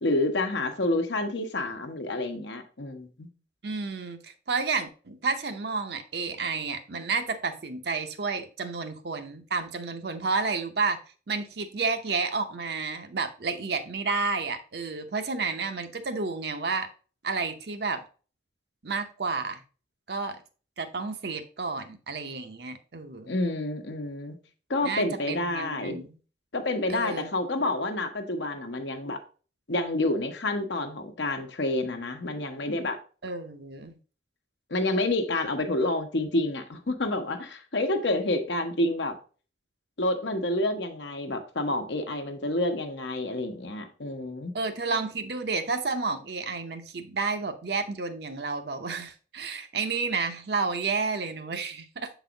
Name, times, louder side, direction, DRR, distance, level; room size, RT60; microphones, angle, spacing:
voice 1, 0.0-3.3 23.3-24.4 24.7-26.0 26.5-29.2 29.7-33.0 34.7-39.1 40.0-44.5, left 2 dB, 75° left, 5 dB, 0.9 m, -28 dB
voice 2, 3.6-11.0 11.3-16.9 17.2-18.0 18.8-19.6 20.1-20.4 20.8-23.3 24.8-26.1 26.9-27.3 33.2-34.0 44.5-52.1, right 4 dB, 60° right, 7 dB, 0.7 m, -31 dB
7.1 x 4.0 x 3.9 m, 0.37 s
head